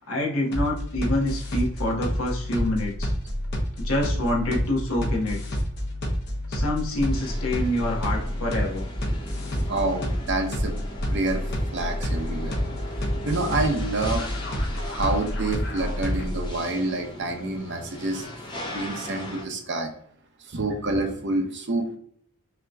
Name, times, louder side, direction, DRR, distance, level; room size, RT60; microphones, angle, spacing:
voice 1, 0.1-3.1 3.8-5.4 6.5-8.9, left 1 dB, 70° left, -1 dB, 1.2 m, -26 dB
sound 1, 0.5-16.5, equal, 50° left, 1.0 m, -28 dB
sound 2, 7.1-19.4, left 1 dB, 20° left, 0.7 m, -40 dB
voice 2, 9.7-10.7 11.1-11.4 11.7-12.6 13.2-14.3 14.8-18.2 18.7-19.9 20.5-22.0, right 2 dB, 55° right, 5 dB, 0.7 m, -27 dB
5.7 x 2.8 x 2.3 m, 0.63 s
head